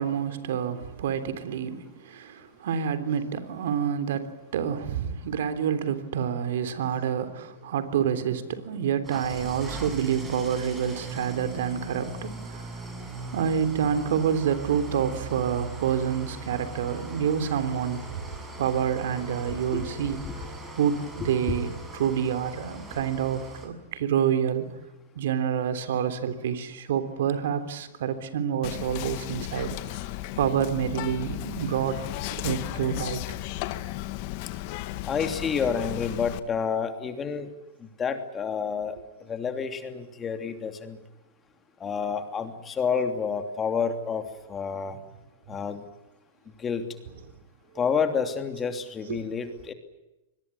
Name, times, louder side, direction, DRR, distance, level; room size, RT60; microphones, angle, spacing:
voice 1, 0.0-12.7 13.3-18.2 18.6-20.5 20.8-24.7 25.1-29.8 30.4-32.0 32.3-33.4 45.5-45.6 49.1-49.2, right 8 dB, 70° right, 10 dB, 3.3 m, -28 dB
Engine starting / Idling, 9.0-23.7, right 2 dB, 15° right, 7.7 m, -40 dB
Whispering, 28.6-36.4, left 16 dB, 50° left, 1.7 m, -35 dB
voice 2, 35.1-37.5 38.0-38.9 39.3-41.0 41.8-44.2 44.5-45.0 45.5-45.8 46.6-46.8 47.8-49.7, left 6 dB, 20° left, 7 dB, 2.9 m, -29 dB
25.0 x 21.5 x 9.8 m, 0.97 s
hypercardioid pair, 120°, 0 cm